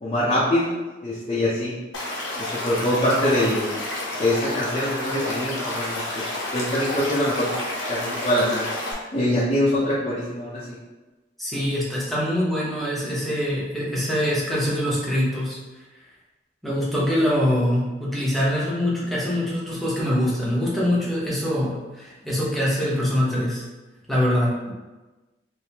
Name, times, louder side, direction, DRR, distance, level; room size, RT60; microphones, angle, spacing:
voice 1, 0.0-1.8 2.4-3.7 4.2-6.2 6.5-7.5 7.9-8.7 9.1-10.6, left 1 dB, 30° left, -9 dB, 0.6 m, -24 dB
Stream / Liquid, 1.9-8.9, left 1 dB, 85° left, 0.9 m, -30 dB
voice 2, 11.4-15.6 16.6-23.6 24.1-24.5, equal, ahead, -7 dB, 0.9 m, -24 dB
3.3 x 2.6 x 2.8 m, 1.2 s
head